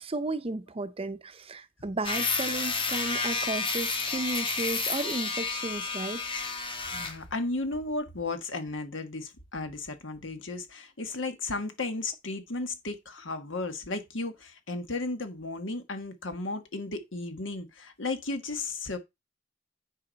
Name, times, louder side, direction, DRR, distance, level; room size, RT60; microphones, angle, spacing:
voice 1, 0.0-6.2, right 2 dB, 30° right, 0.6 m, -34 dB
sound 1, 2.0-7.2, left 4 dB, 25° left, 1.1 m, -31 dB
voice 2, 6.9-19.0, left 2 dB, 80° left, 1.5 m, -34 dB
9.8 x 4.9 x 4.0 m
head